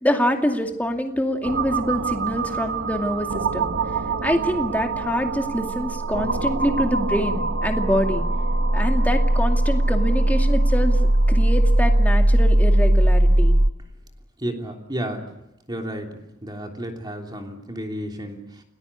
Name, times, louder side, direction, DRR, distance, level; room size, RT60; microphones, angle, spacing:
voice 1, 0.0-3.7 4.2-8.2 8.7-13.5, equal, 10° left, 3 dB, 2.4 m, -25 dB
sound 1, 1.4-13.7, right 1 dB, 65° right, 1.4 m, -20 dB
voice 2, 14.4-15.3 15.7-16.1 16.4-18.6, right 1 dB, 20° right, 2 dB, 3.2 m, -32 dB
29.5 x 20.0 x 8.4 m, 0.87 s
head